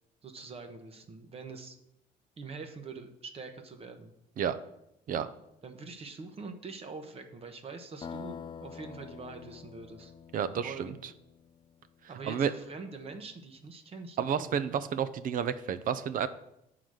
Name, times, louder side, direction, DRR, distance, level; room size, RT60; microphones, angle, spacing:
voice 1, 0.2-1.8 2.4-4.1 5.6-10.1 10.6-11.0 12.1-14.7, right 4 dB, 35° right, 6 dB, 1.0 m, -44 dB
sound 1, 8.0-11.8, left 7 dB, 30° left, 0.4 m, -46 dB
voice 2, 10.3-10.9 12.2-12.5 14.2-16.3, right 8 dB, 55° right, 13 dB, 0.6 m, -30 dB
9.0 x 3.9 x 6.3 m, 0.84 s
cardioid pair, 110°, 17 cm